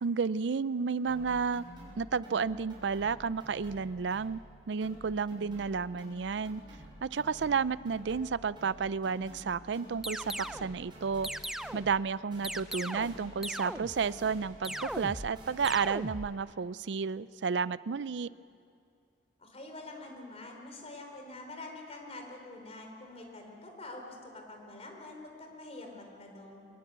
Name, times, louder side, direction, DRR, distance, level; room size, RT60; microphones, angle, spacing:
voice 1, 0.0-1.6 2.0-4.4 4.7-6.6 7.0-11.3 11.7-18.3, right 5 dB, 80° right, 18 dB, 0.5 m, -32 dB
sound 1, 1.1-4.5 4.8-12.0 12.3-16.1, equal, 25° right, 7.1 m, -50 dB
sound 2, 10.0-10.7 11.2-12.0 12.4-13.2 13.4-14.1 14.6-15.3 15.6-16.3, equal, ahead, 0.5 m, -38 dB
voice 2, 19.4-26.7, left 2 dB, 35° left, 2 dB, 4.0 m, -46 dB
23.5 x 21.0 x 8.2 m, 2.4 s
head